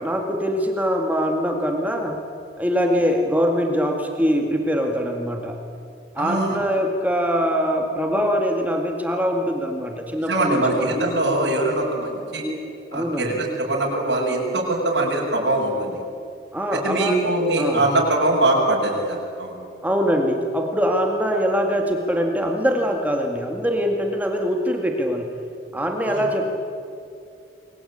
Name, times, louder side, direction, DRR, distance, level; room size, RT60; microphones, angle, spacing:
voice 1, 0.0-2.2 2.6-5.6 6.2-11.0 12.9-13.4 16.5-17.2 17.6-17.9 19.8-25.3 25.7-26.5, equal, 10° right, 2 dB, 2.0 m, -23 dB
voice 2, 6.2-6.6 10.3-12.4 12.9-15.9 16.7-19.5 26.1-26.2, right 2 dB, 70° right, -4 dB, 6.5 m, -22 dB
29.0 x 22.0 x 8.7 m, 2.6 s
head